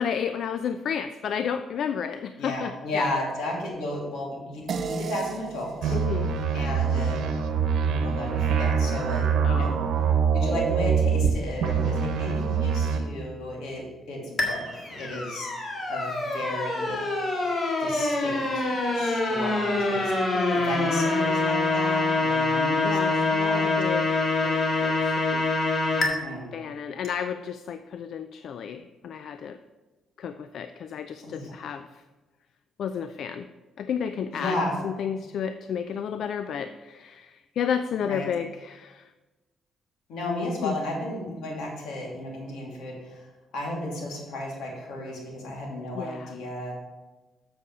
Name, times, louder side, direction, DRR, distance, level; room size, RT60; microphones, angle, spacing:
voice 1, 0.0-3.1 5.9-6.3 9.4-9.9 20.3-20.7 22.8-24.1 24.4-25.5 26.5-29.6 30.2-32.0 32.8-33.5 33.8-34.6 34.8-39.1 40.6-40.8 45.9-46.3, left 7 dB, 65° left, 10 dB, 0.4 m, -32 dB
voice 2, 2.4-6.0 6.5-7.2 7.9-9.8 10.3-14.7 15.0-15.5 15.9-17.0 17.8-18.7 18.9-20.1 20.5-23.7 25.9-26.5 31.2-31.5 34.3-34.8 38.0-38.3 40.1-43.3 43.5-46.7, left 1 dB, 90° left, -2 dB, 2.6 m, -33 dB
sound 1, 4.7-9.4, right 6 dB, 50° right, 0.7 m, -38 dB
sound 2, 5.8-11.3 11.6-13.0, right 6 dB, 85° right, 1.0 m, -24 dB
sound 3, 14.4-26.1, left 2 dB, 45° left, 1.7 m, -25 dB
7.6 x 7.0 x 4.8 m, 1.2 s
cardioid pair, 100°, 0 cm